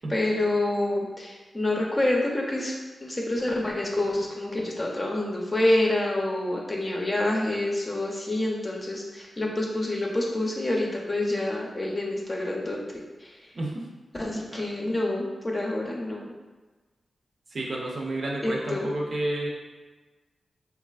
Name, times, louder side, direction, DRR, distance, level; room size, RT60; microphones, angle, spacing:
voice 1, 0.1-13.3 14.1-16.3 18.4-18.9, left 1 dB, 30° left, -2 dB, 0.6 m, -27 dB
voice 2, 17.5-19.5, right 2 dB, 60° right, -2 dB, 0.6 m, -30 dB
3.2 x 2.4 x 2.4 m, 1.3 s
cardioid pair, 65°, 0 cm